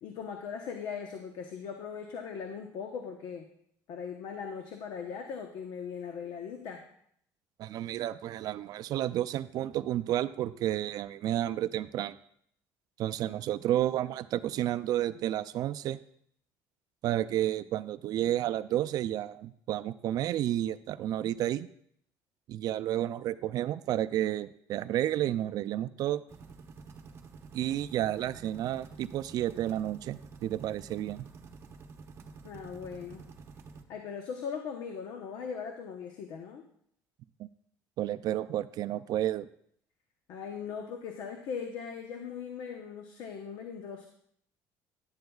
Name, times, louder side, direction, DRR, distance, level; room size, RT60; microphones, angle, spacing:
voice 1, 0.0-3.5 3.9-6.8 32.4-33.2 33.9-36.6 40.3-44.1, left 6 dB, 70° left, 4 dB, 1.0 m, -39 dB
voice 2, 7.6-12.2 13.0-16.0 17.0-21.7 22.5-26.2 27.5-31.3 37.4-37.5 38.0-39.5, right 12 dB, 60° right, 14 dB, 0.4 m, -31 dB
sound 1, 26.3-33.8, right 4 dB, 35° right, 1.0 m, -49 dB
11.5 x 10.5 x 2.4 m, 0.68 s
cardioid pair, 120°, 7 cm